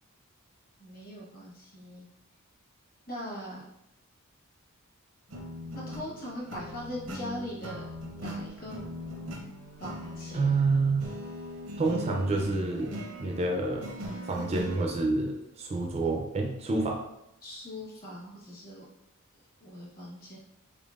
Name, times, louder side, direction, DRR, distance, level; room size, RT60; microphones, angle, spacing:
voice 1, 0.8-2.1 3.1-3.6 5.9-7.8 8.1-8.8 9.8-10.7 17.4-18.8 19.6-20.4, equal, 40° left, -4 dB, 1.1 m, -40 dB
sound 1, 5.3-14.8, left 1 dB, 85° right, 0.7 m, -40 dB
voice 2, 10.3-11.1 11.8-13.9 14.2-17.0, right 3 dB, 30° right, 1 dB, 0.3 m, -28 dB
3.7 x 3.3 x 2.4 m, 0.84 s
head